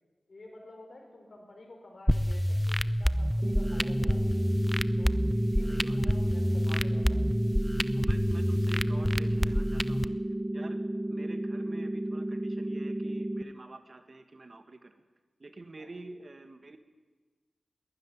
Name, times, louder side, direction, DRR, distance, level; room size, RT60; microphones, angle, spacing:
voice 1, 0.3-4.6 5.0-7.2 15.8-16.0, left 2 dB, 55° left, 2 dB, 5.1 m, -51 dB
sound 1, 2.1-10.1, equal, 5° left, 0.5 m, -28 dB
sound 2, 3.4-13.4, right 1 dB, 25° right, 1.3 m, -33 dB
voice 2, 5.3-6.0 6.7-6.9 7.9-10.1 10.5-10.8 11.1-14.9 15.4-16.8, right 2 dB, 45° right, 8 dB, 1.6 m, -48 dB
21.0 x 13.0 x 9.8 m, 1.3 s
wide cardioid pair, 85°, 0 cm